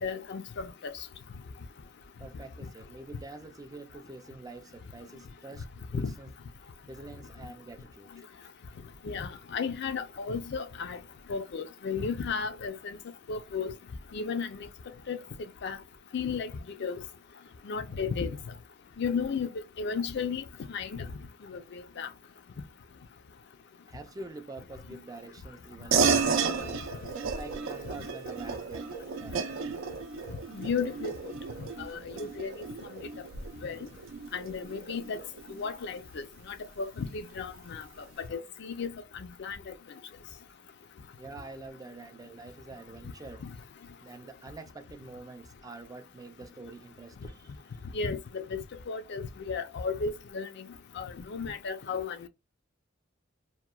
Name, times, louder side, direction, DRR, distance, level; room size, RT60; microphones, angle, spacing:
voice 1, 0.0-0.9 5.9-6.1 9.0-11.0 11.3-13.0 13.3-13.7 14.1-14.6 15.1-15.2 15.6-15.8 16.1-16.5 16.8-17.0 17.6-18.4 19.0-19.5 19.8-21.1 21.5-22.1 30.5-31.1 31.8-32.5 33.6-33.9 34.3-35.2 35.5-37.8 38.3-39.6 47.9-50.7 51.0-52.3, left 5 dB, 60° left, 0.4 m, -34 dB
voice 2, 2.2-5.7 5.9-6.3 6.9-8.2 23.9-26.9 27.3-28.9 29.2-29.5 41.2-43.4 44.0-47.6, right 3 dB, 20° right, 0.3 m, -46 dB
sound 1, 25.9-35.8, right 5 dB, 85° right, 0.5 m, -32 dB
2.9 x 2.2 x 2.2 m
head